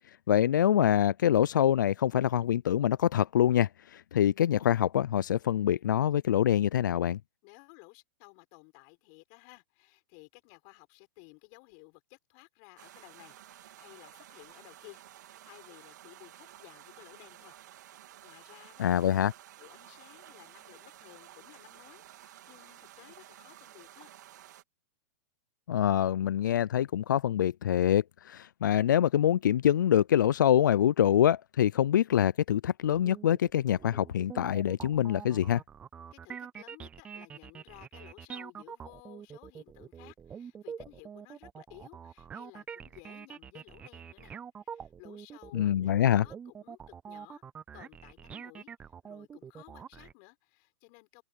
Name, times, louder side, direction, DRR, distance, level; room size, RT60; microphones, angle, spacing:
voice 1, 0.3-7.2 18.8-19.3 25.7-35.6 45.5-46.2, left 10 dB, 90° left, 0.4 m, -25 dB
voice 2, 7.4-17.6 17.9-18.9 19.6-24.1 36.1-44.3 44.6-47.4 47.7-51.2, left 32 dB, 40° left, 5.4 m, -56 dB
sound 1, 12.8-24.6, right 12 dB, 70° right, 2.9 m, -53 dB
sound 2, 32.8-50.1, right 7 dB, 10° right, 0.3 m, -45 dB
hypercardioid pair, 145°, 10 cm